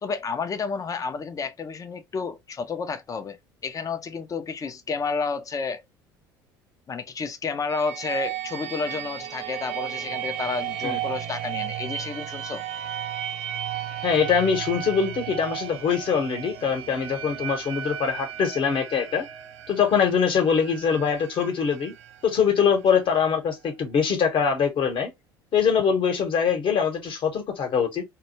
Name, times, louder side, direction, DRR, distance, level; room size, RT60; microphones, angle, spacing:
voice 1, 0.0-5.8 6.9-12.6, left 5 dB, 30° left, 0.5 m, -31 dB
sound 1, 7.7-23.3, right 11 dB, 60° right, 0.5 m, -34 dB
voice 2, 14.0-19.2 19.7-21.9 22.2-25.1 25.5-28.0, left 6 dB, 45° left, 1.0 m, -23 dB
2.2 x 2.1 x 2.9 m
hypercardioid pair, 70°, 12 cm